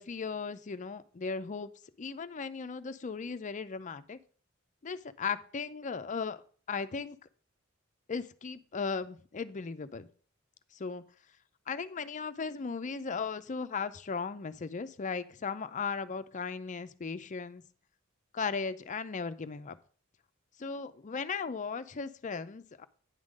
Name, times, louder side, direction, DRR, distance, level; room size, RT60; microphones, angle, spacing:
voice 1, 0.0-1.7 2.0-4.2 4.8-6.4 6.7-7.2 8.1-10.1 10.7-11.0 11.7-17.6 18.3-19.8 20.6-22.9, left 5 dB, 35° left, 0.5 m, -37 dB
9.6 x 3.7 x 6.3 m
head